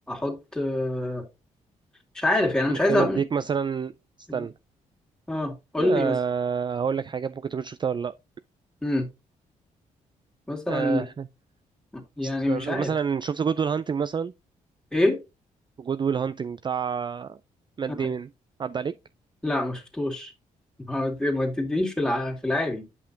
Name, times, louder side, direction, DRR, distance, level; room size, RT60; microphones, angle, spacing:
voice 1, 0.1-1.2 2.1-3.2 4.3-4.4 5.3-6.2 8.8-9.1 10.5-11.1 11.9-12.9 14.9-15.2 18.0-18.1 19.4-20.3 20.8-22.8, left 1 dB, 5° left, 2.3 m, -26 dB
voice 2, 2.7-3.9 4.3-4.5 5.8-8.1 10.7-11.3 12.2-14.3 15.8-17.4 17.8-18.3 18.6-18.9, right 6 dB, 30° right, 0.4 m, -28 dB
8.4 x 5.7 x 2.7 m
hypercardioid pair, 50°, 16 cm